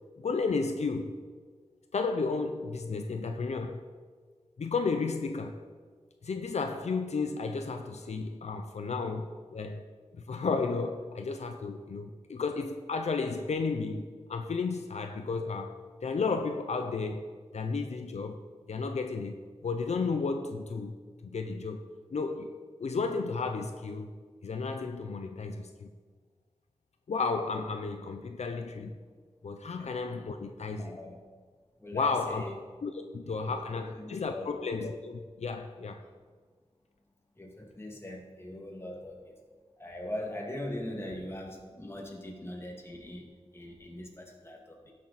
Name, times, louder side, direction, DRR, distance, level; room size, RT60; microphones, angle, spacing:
voice 1, 0.2-1.2 1.9-3.8 4.6-5.6 6.2-9.8 10.1-18.4 18.7-21.0 21.2-22.5 22.8-24.1 24.4-25.9 27.1-29.0 29.4-31.0 31.9-32.4 32.8-36.0, left 4 dB, 75° left, 0.6 m, -33 dB
voice 2, 30.8-31.2 31.8-32.6 33.0-33.1 33.4-34.5 37.4-39.4 39.8-44.9, left 1 dB, 20° left, 2.0 m, -41 dB
17.0 x 6.5 x 4.2 m
wide cardioid pair, 90°, 11 cm